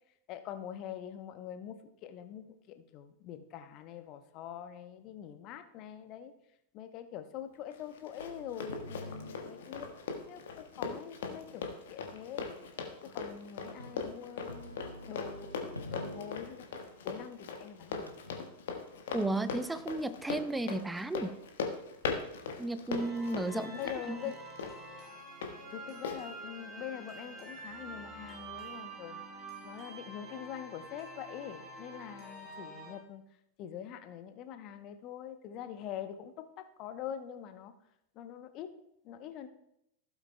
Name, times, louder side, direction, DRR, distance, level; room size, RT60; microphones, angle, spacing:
voice 1, 0.3-6.3 6.7-10.0 10.3-11.6 11.9-12.5 13.0-14.8 15.1-16.7 17.0-18.1 23.5-24.4 25.7-29.2 29.6-33.2 33.6-37.7 38.1-38.7 39.0-39.5, left 10 dB, 40° left, 9 dB, 0.8 m, -44 dB
Run, 7.7-25.5 26.0-26.2, left 5 dB, 60° left, 1.3 m, -40 dB
sound 1, 8.2-11.3 12.0-12.1 13.7-14.0 14.4-17.6 18.1-18.3, left 1 dB, 85° left, 0.9 m, -48 dB
voice 2, 19.1-21.4 22.6-23.7 24.1-24.2, right 2 dB, 5° right, 13 dB, 0.5 m, -33 dB
sound 2, 22.9-32.9, right 2 dB, 25° right, 3.6 m, -47 dB
15.5 x 8.1 x 2.2 m, 0.80 s
figure-of-eight pair, 90°, 0 cm